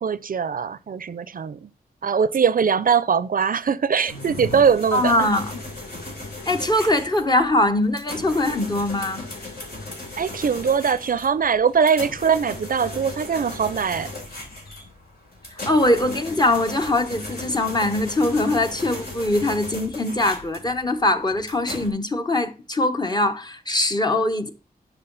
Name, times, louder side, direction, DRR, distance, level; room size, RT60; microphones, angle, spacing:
voice 1, 0.0-1.7 2.0-5.3 10.2-14.1, right 6 dB, 60° right, 0.5 m, -21 dB
sound 1, 4.1-21.9, left 2 dB, 70° left, 3.4 m, -37 dB
voice 2, 4.9-5.5 6.5-9.3 15.5-24.5, left 1 dB, 25° left, 1.0 m, -22 dB
9.8 x 6.0 x 3.9 m
wide cardioid pair, 120°, 17 cm